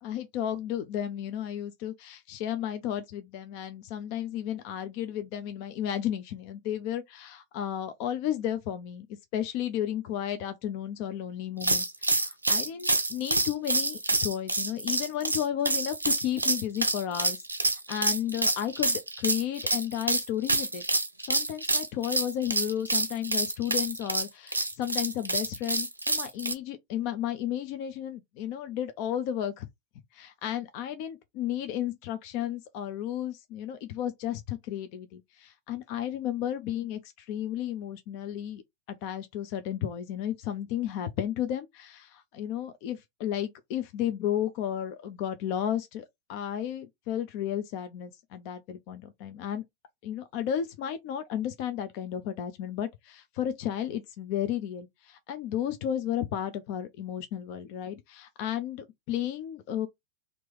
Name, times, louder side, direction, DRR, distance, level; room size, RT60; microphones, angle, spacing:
voice 1, 0.0-9.1 9.3-20.8 21.3-29.7 30.1-38.6 38.9-49.6 50.0-59.9, left 10 dB, 45° left, 0.5 m, -33 dB
sound 1, 11.6-26.5, right 2 dB, 80° right, 0.5 m, -28 dB
3.0 x 2.6 x 3.3 m
figure-of-eight pair, 90°, 0 cm